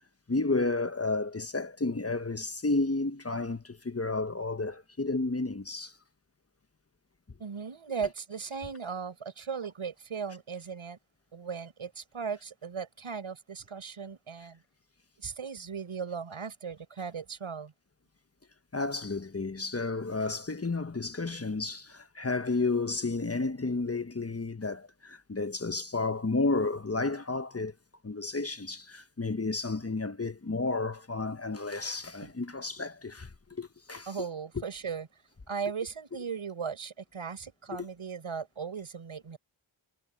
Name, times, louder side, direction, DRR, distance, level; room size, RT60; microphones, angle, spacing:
voice 1, 0.3-5.9 18.7-27.7 28.0-34.1, left 3 dB, 30° left, 1.3 m, -32 dB
voice 2, 7.4-11.0 11.3-14.6 15.2-17.7 32.2-32.3 34.1-35.1 35.5-39.4, right 6 dB, 85° right, 6.2 m, -37 dB
cardioid pair, 45°, 48 cm